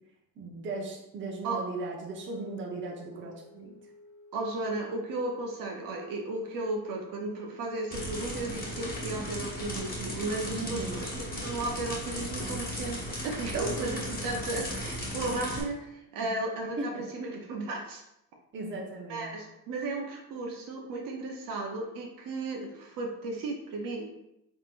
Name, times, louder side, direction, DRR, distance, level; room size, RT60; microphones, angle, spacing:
voice 1, 0.4-3.7 10.5-11.0 16.2-16.3 16.6-17.0 18.5-19.3, right 2 dB, 30° right, -1 dB, 0.9 m, -37 dB
Wind instrument woodwind instrument, 2.1-11.9, left 2 dB, 75° left, 0.8 m, -51 dB
voice 2, 4.3-18.0 19.1-24.0, right 2 dB, 65° right, 1 dB, 0.9 m, -35 dB
sound 1, 7.9-15.6, left 1 dB, 25° left, 1.3 m, -36 dB
4.4 x 3.7 x 2.5 m, 0.85 s
cardioid pair, 115°, 37 cm